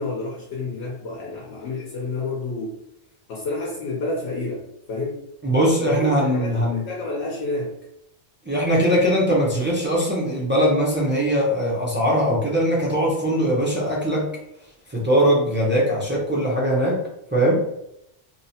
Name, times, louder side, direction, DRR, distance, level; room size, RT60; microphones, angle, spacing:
voice 1, 0.0-2.8 3.3-5.3 5.9-7.8, left 2 dB, 70° left, -3 dB, 0.9 m, -29 dB
voice 2, 5.4-6.8 8.4-14.3 14.9-17.0 17.3-17.6, equal, 15° right, -5 dB, 0.4 m, -21 dB
2.9 x 2.1 x 2.7 m, 0.79 s
omnidirectional pair, 1.2 m